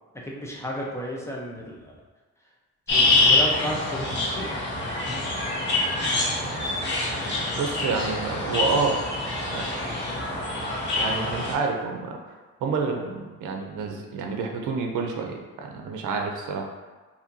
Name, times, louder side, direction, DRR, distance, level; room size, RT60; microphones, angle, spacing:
voice 1, 0.3-2.0 2.9-4.1 4.3-4.5, equal, 10° left, -3 dB, 0.7 m, -32 dB
sound 1, 2.9-11.5, left 2 dB, 35° left, 1.2 m, -25 dB
voice 2, 7.6-9.0 9.5-9.7 11.0-16.7, right 4 dB, 80° right, 2 dB, 0.6 m, -29 dB
4.2 x 2.8 x 2.7 m, 1.3 s
cardioid pair, 90°, 30 cm